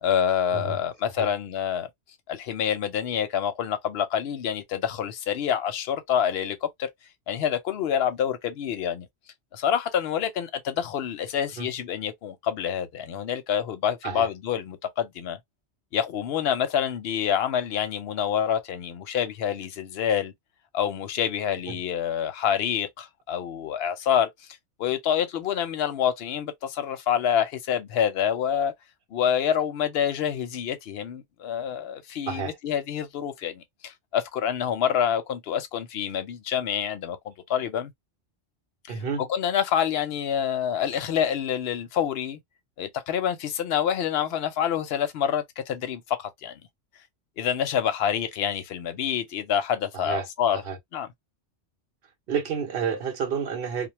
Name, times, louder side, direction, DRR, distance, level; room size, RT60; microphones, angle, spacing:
voice 1, 0.0-1.9 2.3-6.9 7.3-9.1 9.5-15.4 15.9-20.3 20.7-24.3 24.8-28.7 29.1-37.9 38.9-39.0 39.3-42.4 42.8-46.6 47.4-50.6 50.9-51.1, left 8 dB, 65° left, 0.7 m, -27 dB
voice 2, 38.9-39.3 49.9-50.3 50.5-50.8 52.3-53.9, right 6 dB, 55° right, 0.9 m, -30 dB
2.2 x 2.1 x 2.9 m
omnidirectional pair, 1.2 m